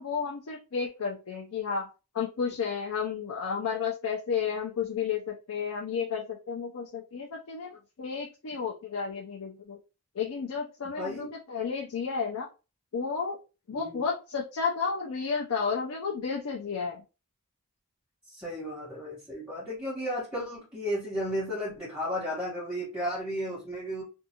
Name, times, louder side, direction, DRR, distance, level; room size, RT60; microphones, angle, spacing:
voice 1, 0.0-1.9 2.1-9.8 10.2-12.5 12.9-13.4 13.7-17.0, left 6 dB, 70° left, -1 dB, 0.5 m, -32 dB
voice 2, 11.0-11.3 13.7-14.0 18.3-24.0, equal, 5° right, -9 dB, 1.3 m, -34 dB
2.6 x 2.4 x 2.7 m, 0.31 s
head